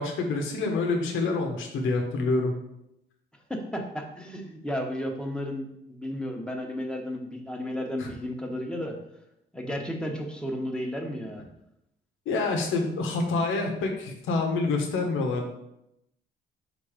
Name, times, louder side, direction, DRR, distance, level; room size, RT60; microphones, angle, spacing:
voice 1, 0.0-2.5 8.0-8.1 12.2-15.5, left 3 dB, 85° left, 3 dB, 1.2 m, -27 dB
voice 2, 3.5-9.0 9.5-11.5, equal, 5° left, 1 dB, 1.2 m, -33 dB
5.5 x 3.9 x 5.0 m, 0.84 s
cardioid pair, 90°, 20 cm